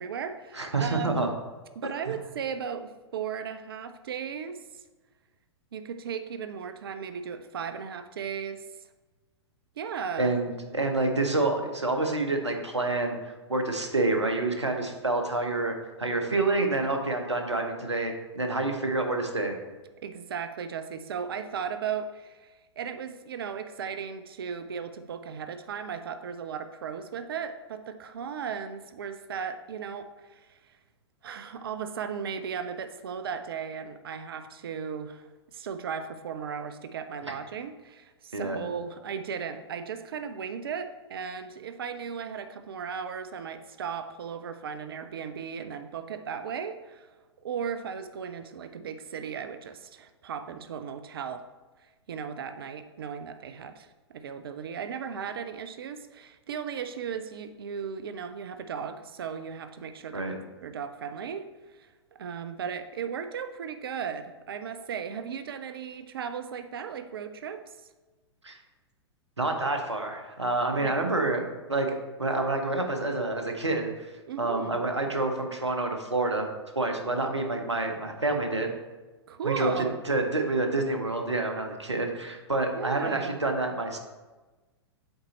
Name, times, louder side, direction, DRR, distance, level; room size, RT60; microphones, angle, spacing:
voice 1, 0.0-1.4 1.8-4.6 5.7-8.6 9.8-10.4 20.0-30.7 31.2-47.1 47.4-51.4 52.1-60.2 60.6-61.9 62.2-67.6 70.8-71.0 74.3-74.8 79.3-80.0 82.7-83.4, right 7 dB, 55° right, 9 dB, 0.5 m, -36 dB
voice 2, 0.5-1.3 10.2-19.6 37.3-37.4 38.3-38.6 60.1-60.3 68.4-68.6 69.4-74.1 74.4-76.5 76.8-78.7 79.4-84.0, right 2 dB, 80° right, 4 dB, 1.0 m, -28 dB
7.8 x 4.0 x 4.1 m, 1.2 s
figure-of-eight pair, 105°, 14 cm